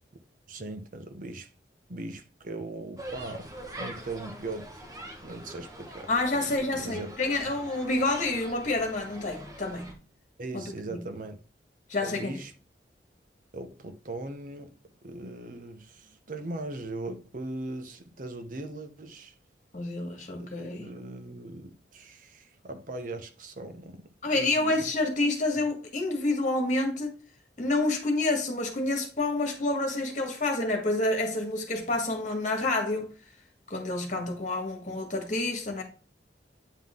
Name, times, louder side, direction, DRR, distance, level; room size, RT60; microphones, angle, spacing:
voice 1, 0.5-1.5 1.9-3.5 3.8-4.8 5.2-7.1 10.4-11.4 12.0-12.5 13.5-14.8 15.0-19.4 20.4-24.0 24.3-24.9, right 2 dB, 50° right, 0.8 m, -39 dB
sound 1, 3.0-9.9, right 1 dB, 20° right, 1.2 m, -44 dB
voice 2, 6.1-9.9 10.5-10.6 10.9-11.0 11.9-12.3 19.7-20.9 24.2-27.2 27.6-33.1 33.7-35.8, left 2 dB, 45° left, 1.7 m, -28 dB
9.2 x 3.8 x 3.6 m
head